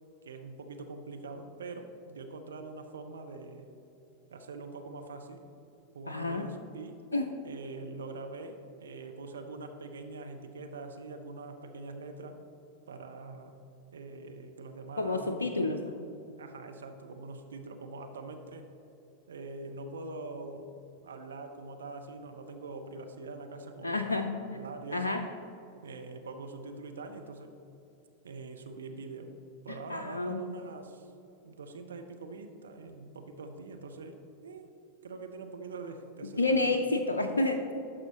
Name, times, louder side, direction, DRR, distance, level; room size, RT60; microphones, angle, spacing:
voice 1, 0.2-3.7 4.3-5.4 5.9-7.0 7.4-12.4 12.9-13.5 13.9-15.4 16.4-18.7 19.3-20.7 21.0-25.1 25.8-27.5 28.2-29.3 29.6-31.1 31.4-34.7 35.0-36.8, right 3 dB, 65° right, 6 dB, 0.6 m, -44 dB
voice 2, 6.1-6.5 7.1-7.3 15.0-15.9 23.8-24.6 24.9-25.2 29.9-30.4 36.2-37.7, left 2 dB, 80° left, 5 dB, 0.4 m, -29 dB
11.0 x 6.2 x 2.9 m, 2.8 s
figure-of-eight pair, 90°, 0 cm